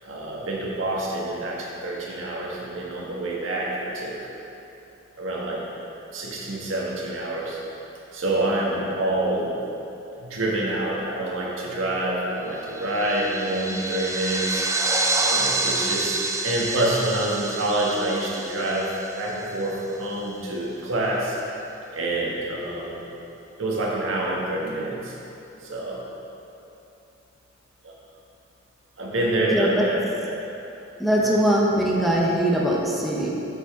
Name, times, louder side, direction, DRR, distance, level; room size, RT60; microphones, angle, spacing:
voice 1, 0.0-4.3 5.2-5.6 6.1-7.6 8.1-9.5 10.2-14.6 15.2-21.4 21.9-23.1 23.6-25.1 25.6-26.0 27.8-27.9 29.0-30.0 31.2-31.3, right 1 dB, 85° right, -4 dB, 1.6 m, -27 dB
sound 1, 12.7-19.5, right 2 dB, 15° right, 0.4 m, -28 dB
voice 2, 29.5-29.9 31.0-33.3, equal, ahead, -4 dB, 0.8 m, -21 dB
8.4 x 6.7 x 3.7 m, 2.9 s
head